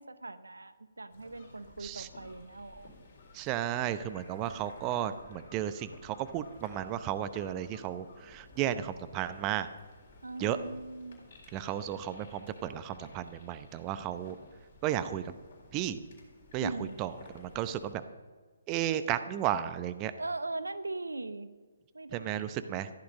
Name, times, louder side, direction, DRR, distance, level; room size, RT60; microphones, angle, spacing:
voice 1, 0.0-2.9 10.2-11.3 16.6-17.0 20.2-21.5 21.9-22.8, right 2 dB, 80° right, 13 dB, 0.7 m, -40 dB
sound 1, 1.1-17.9, left 2 dB, 50° left, 4.2 m, -55 dB
voice 2, 3.3-9.7 10.4-10.6 11.5-14.4 14.8-15.3 15.7-16.0 16.5-18.0 18.7-20.1 22.1-22.9, right 11 dB, 25° right, 12 dB, 0.7 m, -34 dB
14.5 x 11.5 x 5.3 m, 1.4 s
figure-of-eight pair, 135°, 0 cm